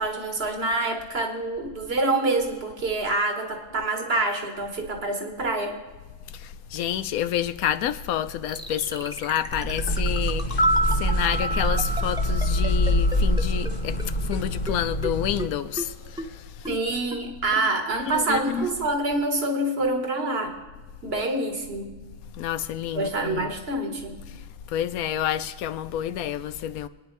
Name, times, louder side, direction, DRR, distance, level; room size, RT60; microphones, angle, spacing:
voice 1, 0.0-5.8 16.7-20.6 21.0-21.9 22.9-24.2, right 2 dB, 45° right, 1.6 m, -26 dB
voice 2, 6.3-10.7 10.9-16.7 18.0-18.7 22.4-23.5 24.7-26.9, left 10 dB, 85° left, 1.1 m, -29 dB
sound 1, 8.5-13.7 14.0-14.1 14.3-14.4 14.7-14.8 15.0-15.1 15.4-15.5 15.8-15.9 16.2-16.3 16.6-16.7 17.1-17.2 17.6-17.7 18.1-18.2 18.6-18.7, equal, 5° right, 0.6 m, -33 dB
sound 2, 9.5-15.5, left 1 dB, 45° left, 1.0 m, -25 dB
sound 3, 10.4-14.6 14.9-15.0, right 1 dB, 20° left, 1.2 m, -29 dB
26.0 x 9.8 x 3.2 m
omnidirectional pair, 1.5 m